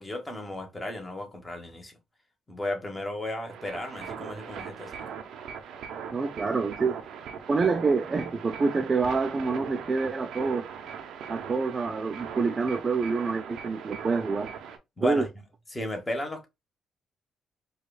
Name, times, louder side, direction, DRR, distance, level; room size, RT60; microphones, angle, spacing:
voice 1, 0.0-2.0 2.5-5.0 15.0-15.3 15.7-16.5, left 1 dB, 15° left, 1.2 m, -34 dB
sound 1, 3.5-14.8, right 7 dB, 80° right, 0.6 m, -40 dB
voice 2, 6.1-7.0 7.5-10.7 11.3-14.5 15.0-15.3, right 4 dB, 35° right, 0.4 m, -27 dB
4.7 x 2.3 x 2.3 m
cardioid pair, 90°, 0 cm